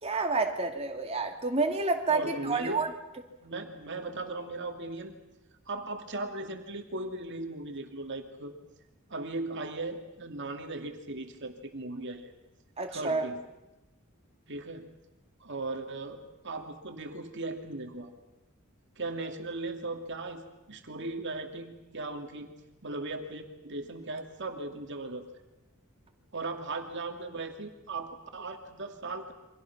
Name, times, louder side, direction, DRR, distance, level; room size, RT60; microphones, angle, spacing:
voice 1, 0.0-2.9 12.8-13.2, right 3 dB, 30° right, 3 dB, 2.7 m, -29 dB
voice 2, 2.1-2.8 3.4-5.1 5.7-8.5 9.1-12.3 12.9-13.4 14.5-14.9 15.4-18.1 19.0-22.5 22.8-25.3 26.3-29.3, right 2 dB, 55° right, 4 dB, 2.4 m, -38 dB
29.5 x 24.5 x 6.0 m, 0.97 s
head